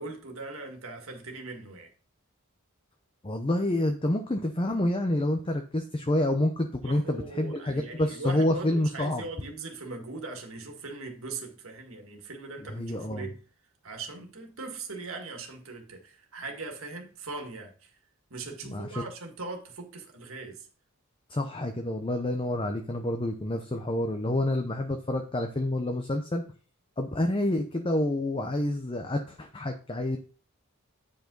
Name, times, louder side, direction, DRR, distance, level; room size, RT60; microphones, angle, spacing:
voice 1, 0.0-1.9 6.8-13.4 13.8-17.9 18.3-20.7, right 3 dB, 65° right, 1.9 m, -40 dB
voice 2, 3.2-9.2 12.7-13.3 18.7-19.1 21.3-26.4 27.0-30.2, left 1 dB, 25° left, 0.7 m, -28 dB
8.9 x 5.5 x 3.9 m
head